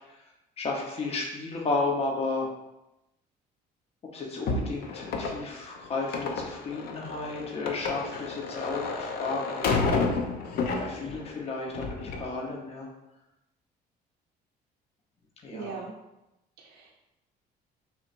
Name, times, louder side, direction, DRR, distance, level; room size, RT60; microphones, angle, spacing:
voice 1, 0.6-2.5 4.1-10.1 10.8-12.9 15.4-15.8, left 3 dB, 35° left, -1 dB, 0.9 m, -33 dB
sound 1, 4.5-11.3 11.7-12.3, left 4 dB, 65° left, 0.7 m, -30 dB
voice 2, 15.5-15.9 16.6-17.0, right 5 dB, 75° right, -2 dB, 0.6 m, -40 dB
6.0 x 3.2 x 2.5 m, 0.93 s
cardioid pair, 110°, 17 cm